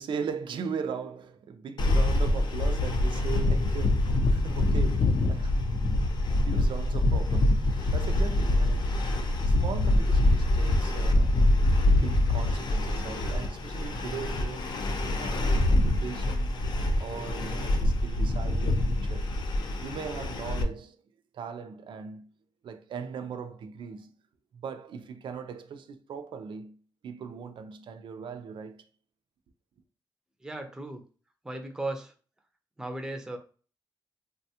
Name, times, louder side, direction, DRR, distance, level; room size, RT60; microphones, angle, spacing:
voice 1, 0.0-5.5 6.4-9.0 9.5-11.3 11.8-14.7 15.2-16.5 17.0-19.3 19.8-21.0 21.3-22.2 22.6-24.1 24.5-26.8 27.0-28.8, right 6 dB, 80° right, 0.4 m, -39 dB
sound 1, 1.8-20.6, left 1 dB, 65° left, 0.4 m, -25 dB
voice 2, 30.4-31.0 31.4-32.1 32.8-33.4, right 2 dB, 5° right, 0.4 m, -36 dB
3.3 x 2.2 x 2.7 m
wide cardioid pair, 165°, 8 cm